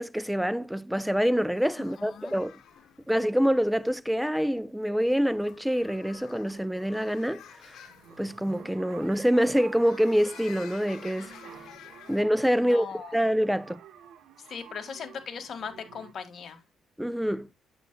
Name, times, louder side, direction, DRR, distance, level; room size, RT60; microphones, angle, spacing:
voice 1, 0.0-2.6 3.1-7.4 8.2-11.4 12.1-12.9 13.1-13.8 17.0-17.5, equal, ahead, 0.5 m, -26 dB
sound 1, 1.4-12.2, left 9 dB, 75° left, 1.3 m, -51 dB
voice 2, 2.0-2.4 12.6-13.2 14.5-16.6, left 6 dB, 55° left, 1.9 m, -39 dB
sound 2, 6.3-16.1, right 8 dB, 75° right, 1.5 m, -51 dB
8.8 x 8.0 x 2.3 m
cardioid pair, 90°, 0 cm